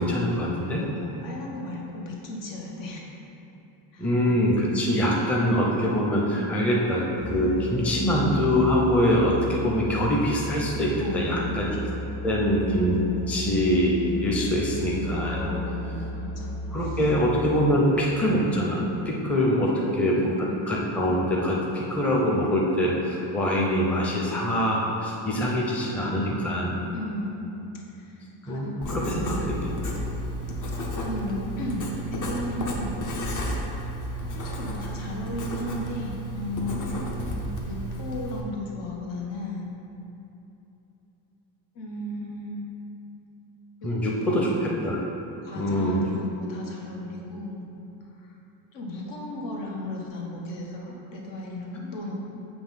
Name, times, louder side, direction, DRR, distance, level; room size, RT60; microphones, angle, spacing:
voice 1, 0.0-0.8 4.0-11.7 12.2-13.0 13.3-15.4 16.7-20.3 20.7-26.8 28.5-29.6 43.8-45.0 45.6-46.1, equal, 5° left, -3 dB, 0.5 m, -24 dB
voice 2, 0.7-3.0 3.9-4.1 4.9-5.1 7.9-8.1 11.0-11.6 15.4-16.5 16.8-17.0 19.6-20.3 26.9-27.5 28.0-28.1 28.4-29.8 31.0-31.8 32.1-33.0 34.3-37.1 37.6-39.7 41.7-42.6 43.8-43.9 44.2-44.6 45.4-47.7 48.2-48.3 48.7-52.1, left 1 dB, 70° left, -2 dB, 1.2 m, -35 dB
Musical instrument, 7.2-18.0, left 1 dB, 25° left, 1.2 m, -34 dB
Writing, 28.8-38.4, equal, 40° left, 0.8 m, -32 dB
6.9 x 3.1 x 5.6 m, 3.0 s
cardioid pair, 145°, 45 cm